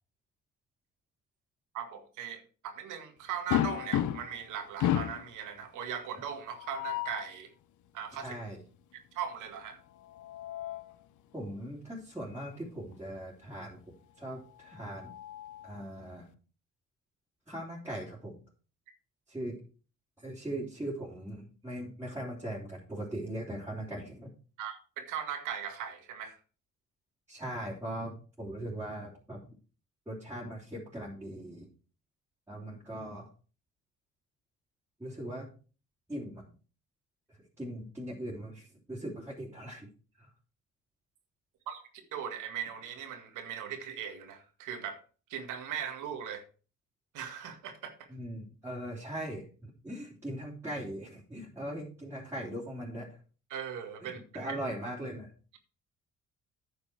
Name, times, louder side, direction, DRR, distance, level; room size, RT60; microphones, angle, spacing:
voice 1, 1.7-7.5 7.9-8.4 9.1-9.8 24.6-26.4 41.7-41.8 42.1-45.0 45.3-46.4 47.1-47.9 53.5-54.6, right 8 dB, 90° right, 5 dB, 1.9 m, -39 dB
sound 1, 3.5-4.4 4.8-5.3 6.5-7.3 9.9-11.0 12.4-12.6 12.9-13.0 14.6-15.8, left 12 dB, 75° left, 0.8 m, -33 dB
voice 2, 8.1-8.6 11.3-15.1 15.6-16.3 17.5-18.4 19.3-19.6 20.2-24.3 27.3-29.5 30.1-31.7 32.5-33.3 35.0-35.5 36.1-36.5 37.3-39.9 40.2-40.3 48.1-53.2 54.0-55.3, right 1 dB, 10° right, -7 dB, 3.5 m, -40 dB
9.7 x 6.8 x 4.7 m, 0.37 s
cardioid pair, 90°, 30 cm